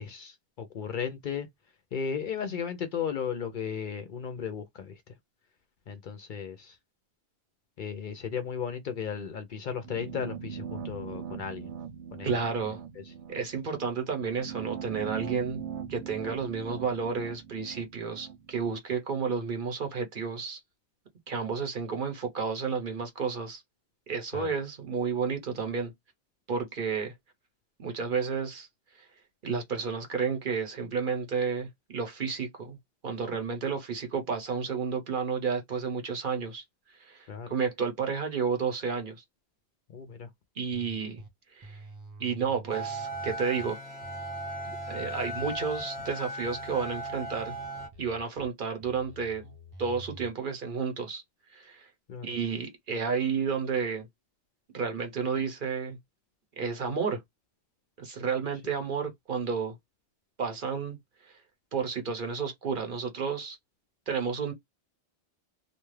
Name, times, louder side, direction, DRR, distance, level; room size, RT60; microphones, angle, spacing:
voice 1, 0.0-1.5 1.9-5.0 5.9-6.8 7.8-11.7 12.1-12.4 24.3-24.5 37.3-37.5 39.9-40.3 52.1-52.3, left 7 dB, 60° left, 0.6 m, -35 dB
sound 1, 9.8-18.8, right 8 dB, 80° right, 0.9 m, -41 dB
voice 2, 12.2-12.8 13.3-15.6 15.9-20.6 21.3-23.6 24.1-25.9 26.5-27.1 27.8-28.7 29.0-29.1 29.4-32.8 33.0-36.6 37.0-39.2 40.6-41.2 41.5-41.8 42.2-43.8 44.6-47.6 48.0-49.5 49.8-51.2 51.5-51.9 52.2-54.1 54.7-56.0 56.6-57.2 58.0-59.8 60.4-61.0 61.7-63.6 64.1-64.5, right 6 dB, 55° right, 0.9 m, -31 dB
sound 2, 40.7-41.3 41.6-43.7 44.0-46.1 46.4-48.5 48.8-50.3, equal, 20° right, 0.6 m, -48 dB
sound 3, 42.7-47.9, right 1 dB, 10° left, 0.9 m, -37 dB
2.6 x 2.3 x 3.1 m
omnidirectional pair, 1.1 m